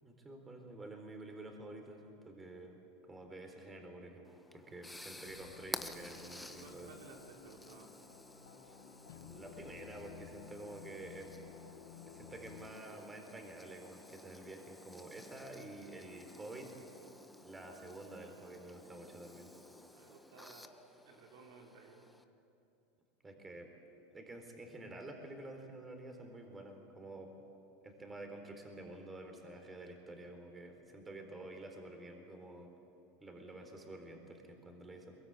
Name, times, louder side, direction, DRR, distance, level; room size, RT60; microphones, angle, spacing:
voice 1, 0.0-2.8 3.1-4.3 4.5-6.9 8.6-8.7 9.2-11.3 12.1-16.8 17.4-19.5 23.2-23.7 24.1-27.3 27.8-32.7 33.2-35.2, right 2 dB, 15° right, 4 dB, 4.0 m, -49 dB
sound 1, 4.3-22.2, left 1 dB, 5° left, 1.2 m, -53 dB
sound 2, 5.2-12.7, left 10 dB, 85° left, 1.2 m, -55 dB
voice 2, 6.4-7.9 19.9-20.7 21.0-22.1, right 4 dB, 70° right, 1 dB, 3.4 m, -57 dB
22.0 x 22.0 x 8.9 m, 2.8 s
hypercardioid pair, 105°, 0 cm